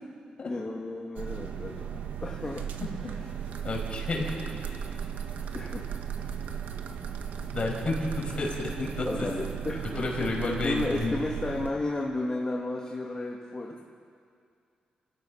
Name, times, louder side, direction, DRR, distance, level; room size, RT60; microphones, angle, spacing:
voice 1, 0.4-1.9 2.2-2.6 5.5-5.8 9.1-13.8, left 2 dB, 25° left, -1 dB, 2.0 m, -33 dB
sound 1, 1.2-11.7, right 8 dB, 90° right, 1.4 m, -36 dB
voice 2, 3.6-4.3 7.5-9.3 10.0-11.2, left 3 dB, 45° left, -1 dB, 5.9 m, -30 dB
29.0 x 16.0 x 5.8 m, 2.3 s
cardioid pair, 105°, 3 cm